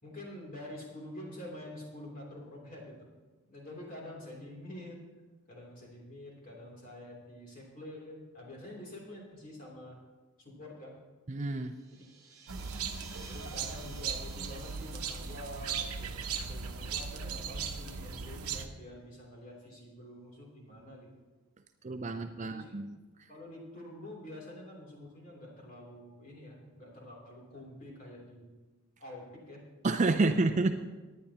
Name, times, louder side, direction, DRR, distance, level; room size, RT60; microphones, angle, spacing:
voice 1, 0.0-3.0 3.5-5.0 5.5-10.0 10.4-10.9 12.0-12.1 13.3-21.1 22.4-22.7 23.3-28.5 29.0-29.6 30.2-30.4, left 1 dB, 40° left, -2 dB, 3.1 m, -47 dB
voice 2, 11.3-11.7 21.8-23.0 29.8-30.7, right 3 dB, 35° right, 7 dB, 0.4 m, -29 dB
sound 1, 11.7-17.8, right 4 dB, 15° right, 1.5 m, -55 dB
sound 2, 12.5-18.7, right 6 dB, 85° right, 0.8 m, -38 dB
18.0 x 10.0 x 2.9 m, 1.2 s
head